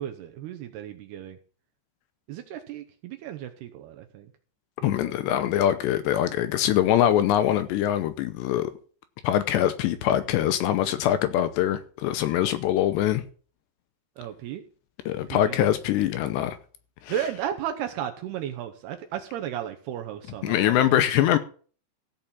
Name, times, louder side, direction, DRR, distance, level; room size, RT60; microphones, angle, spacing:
voice 1, 0.0-1.4 2.3-4.3 4.8-5.1 14.2-14.6 15.3-15.6 17.1-20.7, right 10 dB, 75° right, 2.5 m, -34 dB
voice 2, 4.8-8.7 9.2-13.2 15.1-16.6 17.0-17.1 20.4-21.4, left 11 dB, 75° left, 2.7 m, -23 dB
15.5 x 5.6 x 7.3 m
omnidirectional pair, 5.4 m